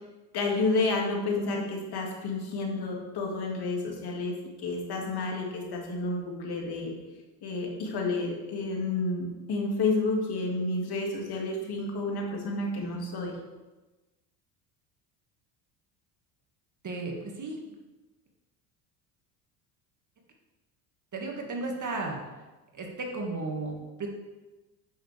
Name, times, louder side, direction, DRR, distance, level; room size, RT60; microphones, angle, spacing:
voice 1, 0.3-6.9 7.4-13.3, left 3 dB, 50° left, 0 dB, 2.3 m, -30 dB
voice 2, 16.8-17.6 21.1-22.2 22.7-24.1, right 3 dB, 40° right, 1 dB, 2.0 m, -34 dB
8.7 x 7.1 x 3.4 m, 1.1 s
hypercardioid pair, 65°, 48 cm